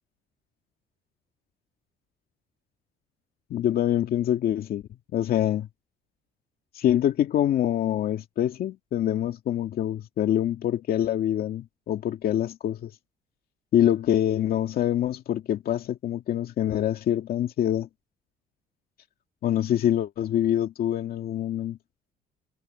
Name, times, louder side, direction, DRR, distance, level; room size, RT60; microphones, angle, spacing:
voice 1, 3.5-4.8 5.1-5.7 6.7-12.9 13.7-17.9 19.4-21.8, left 11 dB, 60° left, 2.3 m, -25 dB
cardioid pair, 110°, 17 cm